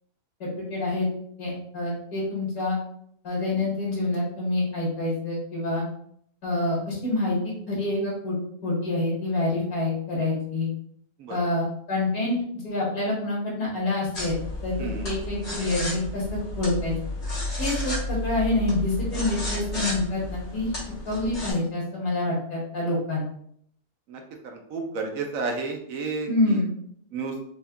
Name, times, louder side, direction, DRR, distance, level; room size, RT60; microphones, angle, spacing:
voice 1, 0.4-1.1 1.4-2.8 3.2-5.8 6.4-7.4 7.7-8.4 8.6-10.7 11.3-12.4 12.6-16.9 17.6-20.7 21.1-23.3 26.3-26.7, left 2 dB, 75° left, -5 dB, 1.9 m, -27 dB
sound 1, 14.1-21.5, left 2 dB, 50° left, 1.4 m, -32 dB
voice 2, 24.1-26.6 27.1-27.4, right 4 dB, 70° right, 3 dB, 0.9 m, -32 dB
5.1 x 2.3 x 2.2 m, 0.68 s
omnidirectional pair, 1.6 m